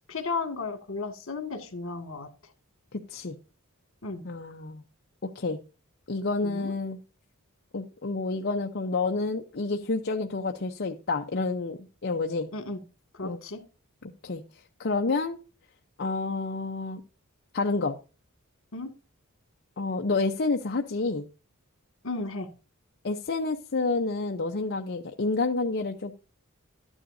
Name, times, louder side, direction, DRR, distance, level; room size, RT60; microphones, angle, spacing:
voice 1, 0.0-2.3 4.0-4.2 6.4-6.7 12.5-12.8 13.1-13.6 18.7-18.9 22.0-22.5, left 3 dB, 65° left, 6 dB, 2.0 m, -34 dB
voice 2, 2.9-3.3 4.2-4.8 5.2-5.6 6.1-7.0 7.7-12.5 13.2-13.4 14.2-14.4 14.8-15.4 16.0-17.0 17.5-18.0 19.8-21.2 23.0-26.1, left 3 dB, 50° left, 3 dB, 0.7 m, -29 dB
12.5 x 9.8 x 2.7 m, 0.34 s
head